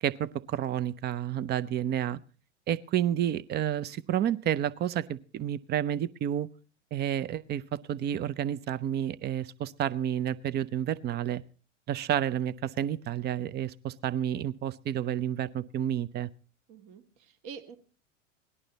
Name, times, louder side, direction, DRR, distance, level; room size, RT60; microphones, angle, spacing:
voice 1, 0.0-2.2 2.7-6.5 6.9-11.4 11.9-16.3, right 10 dB, 25° right, 17 dB, 0.5 m, -30 dB
voice 2, 16.7-17.8, right 6 dB, 50° right, 8 dB, 1.6 m, -46 dB
18.0 x 11.0 x 4.0 m, 0.38 s
hypercardioid pair, 95°, 37 cm